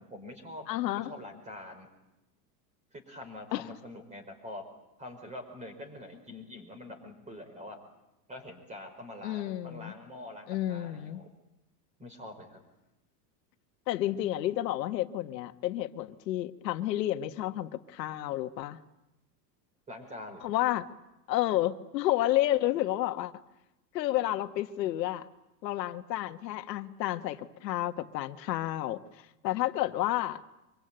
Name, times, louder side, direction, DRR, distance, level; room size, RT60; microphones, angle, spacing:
voice 1, 0.0-1.9 2.9-4.7 5.0-7.8 8.3-11.3 12.0-12.6 19.9-20.4, left 1 dB, 15° right, 8 dB, 4.9 m, -45 dB
voice 2, 0.7-1.1 3.5-3.6 9.2-9.9 10.5-11.2 13.9-18.8 20.4-20.9 21.3-23.3 23.9-25.2 25.6-29.0 29.4-30.4, left 14 dB, 85° left, 8 dB, 1.5 m, -30 dB
25.0 x 23.5 x 9.0 m, 0.94 s
supercardioid pair, 160°, 49 cm